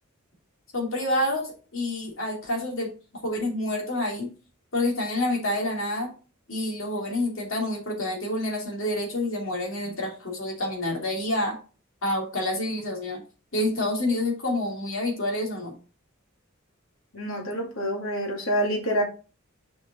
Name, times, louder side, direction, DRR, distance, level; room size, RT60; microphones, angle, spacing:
voice 1, 0.7-2.9 3.2-4.3 4.7-6.1 6.5-11.6 12.0-13.2 13.5-15.7, left 1 dB, 70° left, 0 dB, 2.9 m, -28 dB
voice 2, 17.1-19.0, equal, 85° left, 1 dB, 2.3 m, -27 dB
7.1 x 5.2 x 3.8 m, 0.34 s
head